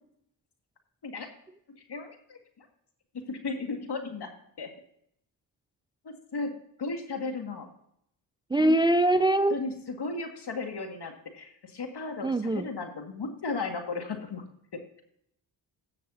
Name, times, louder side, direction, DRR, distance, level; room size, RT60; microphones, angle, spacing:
voice 1, 1.8-2.7 3.3-4.3 4.6-4.7 6.0-6.5 6.8-7.7 8.6-8.8 9.5-14.4 14.7-14.8, left 3 dB, 55° left, 4 dB, 1.8 m, -35 dB
voice 2, 8.5-9.6 12.2-12.7, right 1 dB, 10° right, 12 dB, 0.3 m, -23 dB
17.0 x 6.6 x 2.7 m, 0.73 s
cardioid pair, 50°, 47 cm